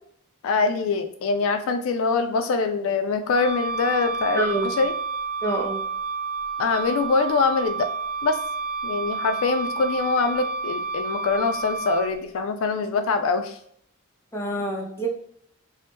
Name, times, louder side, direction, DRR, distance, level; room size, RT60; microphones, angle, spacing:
voice 1, 0.4-4.9 6.6-7.9 8.2-8.4 8.8-13.6, left 4 dB, 65° left, 7 dB, 0.3 m, -24 dB
Wind instrument woodwind instrument, 3.3-12.1, right 4 dB, 85° right, 0.6 m, -30 dB
voice 2, 4.3-4.7 5.4-5.8 14.3-15.1, right 2 dB, 10° left, -1 dB, 0.6 m, -26 dB
2.7 x 2.0 x 3.3 m, 0.66 s
head